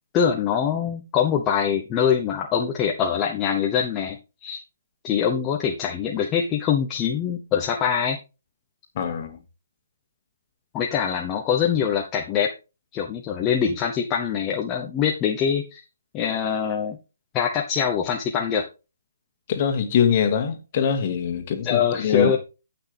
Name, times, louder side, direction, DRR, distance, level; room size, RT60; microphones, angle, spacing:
voice 1, 0.1-4.2 4.4-4.6 5.0-8.2 10.7-12.5 12.9-15.8 16.1-17.0 17.3-18.6 21.6-22.4, left 8 dB, 20° left, 0.9 m, -23 dB
voice 2, 9.0-9.4 19.5-22.3, left 7 dB, 35° left, 2.0 m, -23 dB
14.0 x 6.0 x 3.5 m
hypercardioid pair, 155°, 0 cm